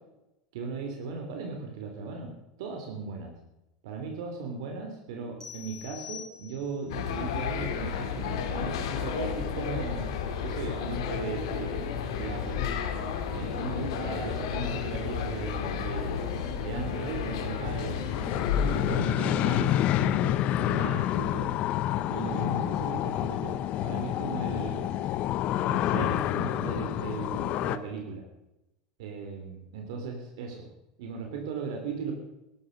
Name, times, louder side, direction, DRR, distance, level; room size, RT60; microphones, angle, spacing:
voice 1, 0.5-3.3 3.8-10.1 10.4-12.6 13.3-16.3 16.6-18.0 18.6-21.5 22.1-23.5 23.8-25.1 25.7-28.2 29.0-30.7 31.0-32.1, right 5 dB, 80° right, 2 dB, 3.4 m, -37 dB
sound 1, 5.4-6.9, left 10 dB, 15° left, 3.8 m, -44 dB
sound 2, 6.9-19.0, left 7 dB, 80° left, 2.9 m, -32 dB
sound 3, 17.6-27.8, left 12 dB, 45° left, 1.0 m, -28 dB
17.5 x 13.5 x 5.4 m, 0.91 s
supercardioid pair, 130°, 3 cm